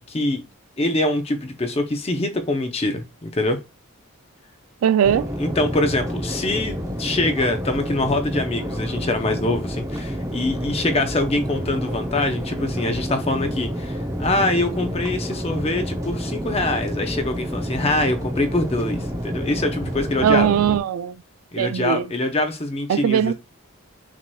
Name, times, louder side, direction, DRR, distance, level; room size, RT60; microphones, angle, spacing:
voice 1, 0.1-0.4 0.8-3.6 5.1-20.5 21.5-23.3, left 2 dB, 30° left, 0.5 m, -24 dB
voice 2, 4.8-5.3 20.2-21.2 21.6-22.0 22.9-23.3, right 9 dB, 80° right, 0.3 m, -19 dB
sound 1, 5.0-20.8, equal, 15° right, 0.5 m, -29 dB
5.9 x 2.8 x 2.2 m
head